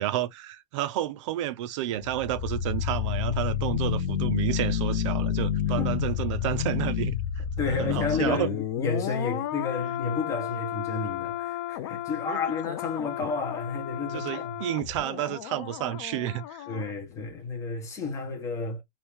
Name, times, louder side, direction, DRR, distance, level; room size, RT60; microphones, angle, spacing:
voice 1, 0.0-7.1 7.7-8.5 12.3-12.4 14.1-16.7, right 13 dB, 50° right, 0.4 m, -30 dB
sound 1, 1.9-16.9 17.2-17.3, left 10 dB, 40° left, 0.5 m, -31 dB
voice 2, 7.6-14.6 16.7-18.8, left 4 dB, 15° left, 0.9 m, -31 dB
3.1 x 2.6 x 3.5 m
supercardioid pair, 170°, 21 cm